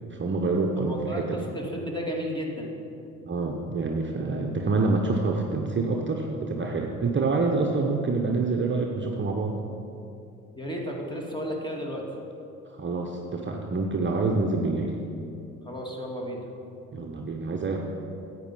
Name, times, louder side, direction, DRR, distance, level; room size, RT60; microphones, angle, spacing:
voice 1, 0.0-1.5 3.2-9.5 12.7-14.9 16.9-17.8, right 3 dB, 30° right, 1 dB, 1.0 m, -27 dB
voice 2, 0.9-2.7 10.6-12.1 15.7-16.4, equal, 10° left, -1 dB, 2.4 m, -33 dB
10.0 x 8.4 x 5.6 m, 2.7 s
hypercardioid pair, 60°, 41 cm